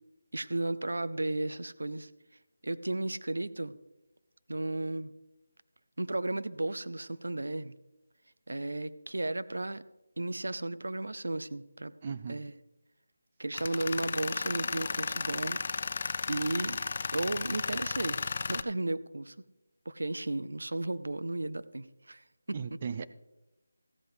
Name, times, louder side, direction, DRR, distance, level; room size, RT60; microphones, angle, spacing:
voice 1, 0.3-2.1 2.6-3.8 4.5-5.1 6.0-7.7 8.5-9.8 10.2-12.5 13.4-15.6 16.3-16.8 17.1-18.2 18.5-19.4 19.9-22.2, right 2 dB, 75° right, 15 dB, 0.6 m, -34 dB
voice 2, 12.0-12.4 22.5-23.0, right 6 dB, 35° right, 13 dB, 0.5 m, -36 dB
Tools, 13.5-18.6, left 4 dB, 40° left, 0.4 m, -34 dB
14.5 x 8.1 x 4.9 m, 1.0 s
figure-of-eight pair, 165°, 0 cm